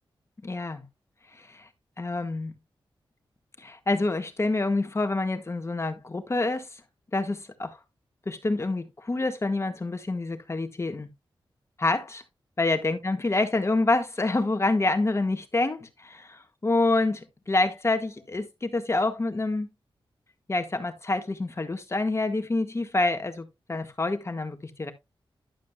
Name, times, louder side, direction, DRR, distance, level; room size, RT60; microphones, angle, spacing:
voice 1, 0.4-0.8 1.5-1.7 2.0-2.5 3.6-6.7 7.1-7.8 8.2-11.1 11.8-12.2 12.6-19.7 20.5-24.9, left 2 dB, 30° left, 1.6 m, -27 dB
11.5 x 7.4 x 2.3 m
wide cardioid pair, 100°, 9 cm